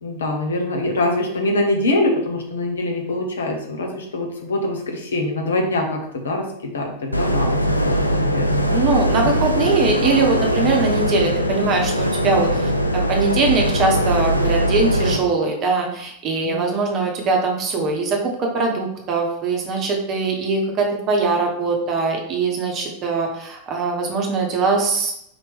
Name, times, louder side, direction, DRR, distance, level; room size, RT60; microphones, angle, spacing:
voice 1, 0.0-9.4 16.4-16.7, left 2 dB, 65° left, 2 dB, 0.9 m, -24 dB
sound 1, 7.1-15.2, equal, 85° left, 0.3 m, -21 dB
voice 2, 8.7-25.1, right 3 dB, 35° right, 1 dB, 0.9 m, -21 dB
4.2 x 3.0 x 3.4 m, 0.73 s
figure-of-eight pair, 90°, 0 cm